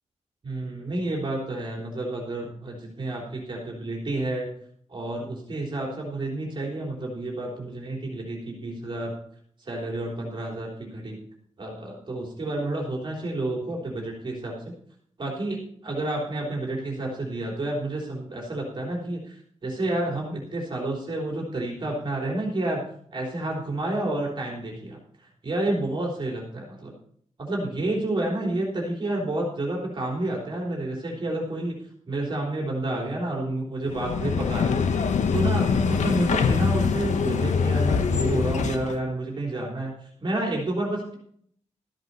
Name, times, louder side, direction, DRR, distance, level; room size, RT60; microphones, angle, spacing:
voice 1, 0.4-4.5 4.9-9.1 9.6-11.2 11.6-14.8 15.2-22.8 23.1-25.0 25.4-27.0 27.4-31.8 32.1-34.8 35.3-39.9 40.2-41.2, right 2 dB, 40° right, -1 dB, 3.5 m, -30 dB
sound 1, 33.9-39.0, left 5 dB, 85° left, 1.0 m, -24 dB
13.5 x 7.9 x 5.5 m, 0.62 s
wide cardioid pair, 165°, 12 cm